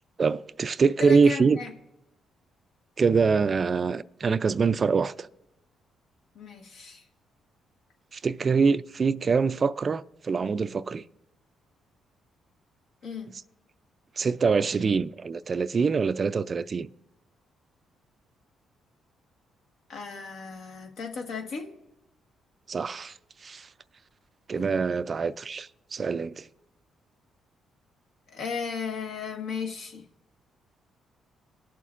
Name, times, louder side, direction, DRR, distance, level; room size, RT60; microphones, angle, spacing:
voice 1, 0.2-1.6 3.0-5.3 8.1-11.0 14.2-16.9 22.7-23.1 23.4-23.7 24.5-26.5, right 5 dB, 40° right, 0.3 m, -24 dB
voice 2, 1.0-1.7 6.3-7.0 13.0-13.3 19.9-21.7 24.5-24.7 28.3-30.0, left 5 dB, 70° left, 1.4 m, -35 dB
20.0 x 6.9 x 2.5 m
cardioid pair, 90°, 0 cm